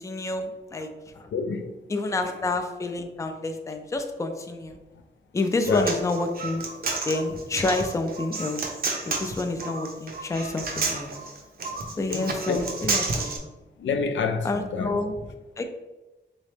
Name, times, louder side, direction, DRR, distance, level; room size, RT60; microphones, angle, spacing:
voice 1, 0.0-1.3 1.9-4.8 5.3-6.7 7.1-8.7 9.0-11.1 12.0-13.6 14.4-15.3 15.6-15.7, left 2 dB, 15° left, 0.3 m, -29 dB
voice 2, 1.3-1.7 5.7-5.9 12.1-12.6 13.8-14.9, left 5 dB, 90° left, 0.4 m, -27 dB
Human voice, 5.4-13.4, right 3 dB, 55° right, 0.6 m, -31 dB
3.8 x 3.1 x 3.2 m
wide cardioid pair, 160°, 19 cm